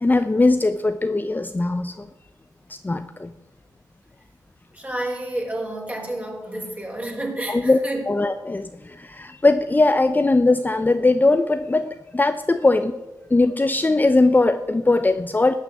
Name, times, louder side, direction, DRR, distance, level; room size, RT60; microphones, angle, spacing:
voice 1, 0.0-2.1 2.7-3.3 7.5-7.8 8.1-13.0 13.3-15.5, left 2 dB, 25° left, 9 dB, 0.7 m, -20 dB
voice 2, 4.7-8.0, right 1 dB, 20° right, 1 dB, 4.2 m, -30 dB
13.5 x 6.4 x 9.7 m, 1.1 s
cardioid pair, 55°, 8 cm